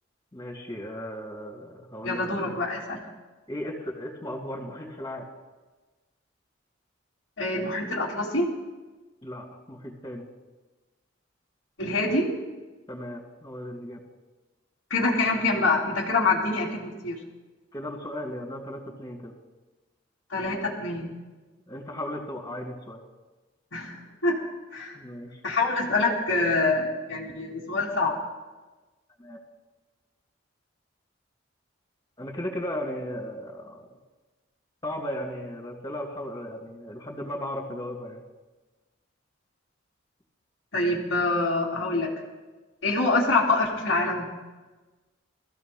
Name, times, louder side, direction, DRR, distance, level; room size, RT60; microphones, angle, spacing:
voice 1, 0.3-2.6 3.5-5.2 9.2-10.2 12.9-14.0 17.7-19.3 21.7-23.0 24.9-25.4 29.2-29.4 32.2-33.9 34.8-38.2, left 1 dB, 20° left, -3 dB, 3.3 m, -36 dB
voice 2, 2.0-3.0 7.4-8.5 11.8-12.3 14.9-17.2 20.3-21.1 23.7-24.4 24.7-25.0 25.4-28.1 40.7-42.1 42.8-44.3, left 2 dB, 70° left, -6 dB, 2.3 m, -25 dB
25.5 x 15.5 x 2.2 m, 1.2 s
head